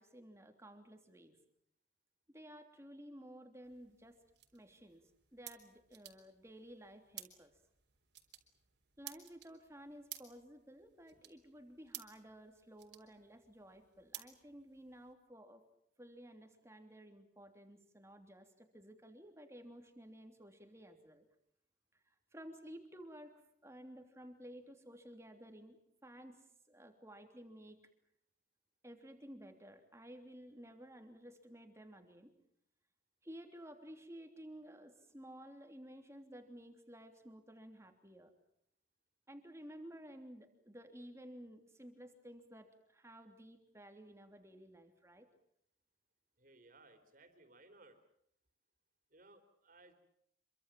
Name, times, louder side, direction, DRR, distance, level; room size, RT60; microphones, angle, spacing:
voice 1, 0.0-1.4 2.3-4.2 4.5-7.5 9.0-15.6 16.0-21.2 21.9-23.3 23.6-25.8 26.0-27.8 28.8-32.3 33.2-38.3 39.3-45.3, equal, 15° right, 6 dB, 3.1 m, -54 dB
sound 1, 3.6-15.1, right 13 dB, 65° right, 3.8 m, -56 dB
voice 2, 46.4-48.0 49.1-49.9, right 2 dB, 45° right, 7 dB, 4.0 m, -62 dB
27.0 x 24.0 x 7.6 m, 0.73 s
head